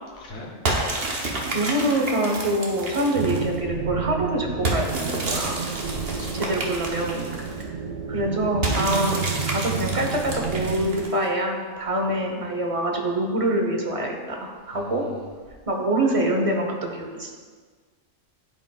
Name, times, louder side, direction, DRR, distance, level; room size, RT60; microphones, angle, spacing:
voice 1, 0.2-0.5 5.8-6.6 7.4-7.7 14.7-15.2, left 2 dB, 55° left, -3 dB, 1.2 m, -41 dB
sound 1, 0.7-3.6 4.7-7.6 8.6-11.3, right 2 dB, 55° right, 1.1 m, -30 dB
voice 2, 1.5-5.7 6.3-7.3 7.6-7.7 8.1-15.0 15.7-17.3, right 1 dB, 30° right, 1 dB, 0.9 m, -25 dB
sound 2, 3.1-11.1, right 6 dB, 75° right, 0.4 m, -30 dB
12.0 x 5.1 x 2.3 m, 1.5 s
omnidirectional pair, 1.3 m